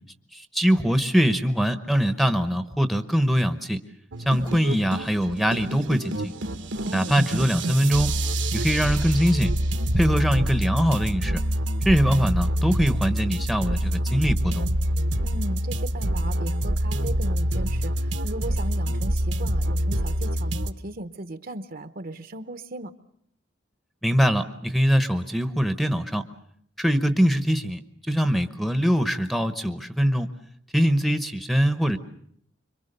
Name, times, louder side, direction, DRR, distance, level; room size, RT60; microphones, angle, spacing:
voice 1, 0.3-3.8 4.2-6.3 6.9-8.2 8.5-9.5 9.9-11.4 11.8-14.7 24.0-26.2 26.8-27.8 28.1-30.3 30.7-32.0, equal, ahead, 9 dB, 0.9 m, -22 dB
sound 1, 4.1-20.7, right 1 dB, 70° right, 1.1 m, -26 dB
voice 2, 6.8-7.1 10.0-10.3 15.2-22.9, right 1 dB, 50° right, 11 dB, 0.9 m, -37 dB
26.0 x 24.0 x 6.7 m, 0.66 s
head